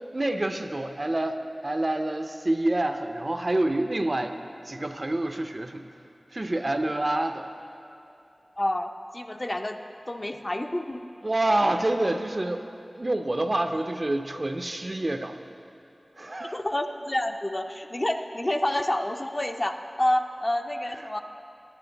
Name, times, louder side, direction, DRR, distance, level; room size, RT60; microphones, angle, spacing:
voice 1, 0.1-4.3 4.7-5.9 6.3-7.5 11.2-12.6 13.0-15.3 16.2-16.6, right 1 dB, 40° right, 7 dB, 0.5 m, -27 dB
voice 2, 8.6-9.8 10.1-11.1 16.4-21.2, left 1 dB, 30° left, 6 dB, 0.4 m, -28 dB
10.5 x 9.1 x 3.9 m, 2.8 s
wide cardioid pair, 65°, 0 cm